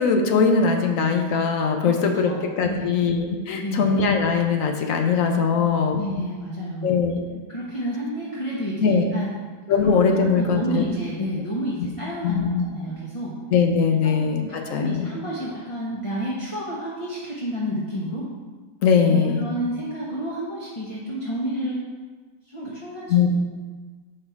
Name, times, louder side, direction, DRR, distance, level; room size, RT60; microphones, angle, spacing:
voice 1, 0.0-6.0 6.8-7.4 8.8-9.1 9.7-10.9 12.2-12.6 13.5-15.1 18.8-19.4 23.1-23.3, left 5 dB, 60° left, 4 dB, 1.0 m, -21 dB
voice 2, 2.2-2.9 3.6-3.9 5.6-7.0 7.5-9.3 9.8-13.3 14.0-14.2 14.5-18.3 19.1-21.8 22.5-23.3, equal, 25° left, -6 dB, 0.9 m, -30 dB
5.7 x 5.6 x 4.6 m, 1.4 s
omnidirectional pair, 1.8 m